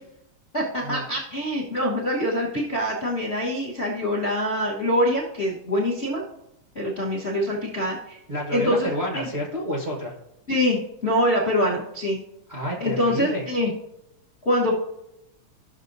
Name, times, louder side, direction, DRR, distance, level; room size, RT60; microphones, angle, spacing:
voice 1, 0.5-6.2 6.7-8.2 8.5-8.9 9.1-9.3 10.5-12.2 12.8-13.7 14.4-14.8, equal, 55° left, -4 dB, 0.7 m, -24 dB
voice 2, 8.3-10.1 12.5-13.4, equal, 85° right, -3 dB, 0.5 m, -29 dB
15.0 x 6.3 x 2.6 m, 0.84 s
omnidirectional pair, 3.5 m